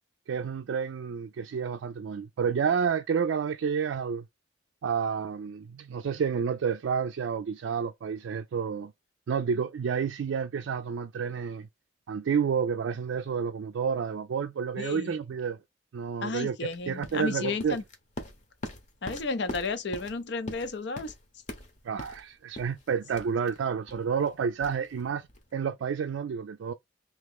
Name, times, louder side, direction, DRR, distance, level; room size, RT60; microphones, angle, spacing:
voice 1, 0.3-4.2 4.8-8.9 9.3-11.7 12.1-15.6 15.9-16.6 16.9-17.8 21.8-25.3 25.5-26.7, right 6 dB, 80° right, 0.3 m, -30 dB
voice 2, 14.8-15.2 16.2-17.8 19.0-21.1, left 3 dB, 65° left, 0.6 m, -33 dB
sound 1, 16.7-25.5, left 1 dB, 40° left, 0.9 m, -43 dB
3.1 x 2.9 x 3.6 m
head